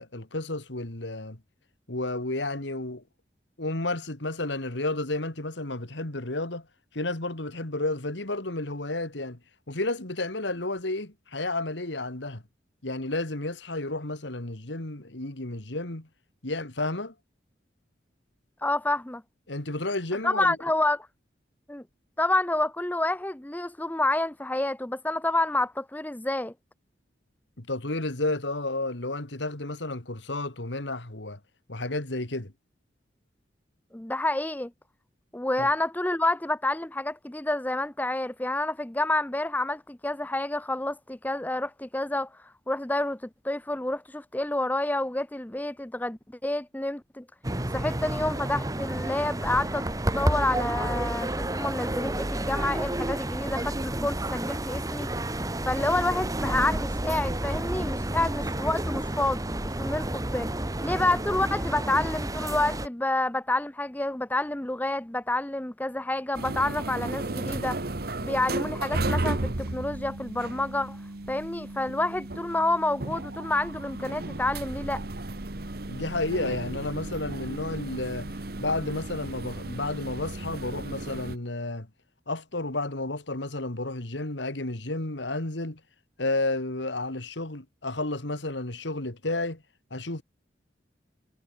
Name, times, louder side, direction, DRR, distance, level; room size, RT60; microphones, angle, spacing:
voice 1, 0.0-1.4 1.9-3.0 3.6-6.7 6.9-9.4 9.7-12.4 12.8-16.1 16.4-17.1 19.5-20.6 27.6-31.4 31.7-32.5 35.6-35.7 75.9-78.3 78.6-81.9 82.3-85.8 86.2-89.6 89.9-90.2, left 2 dB, 80° left, 2.6 m, -31 dB
voice 2, 18.6-19.2 20.2-21.1 21.7-21.8 22.2-26.5 33.9-34.7 35.3-42.3 42.7-47.2 47.7-49.8 50.1-55.1 55.7-60.5 60.8-67.8 68.2-71.0 71.3-75.0, left 2 dB, 10° left, 0.6 m, -28 dB
sound 1, 47.4-62.9, right 1 dB, 20° right, 1.6 m, -30 dB
sound 2, 66.3-81.4, right 2 dB, 55° right, 1.4 m, -34 dB
head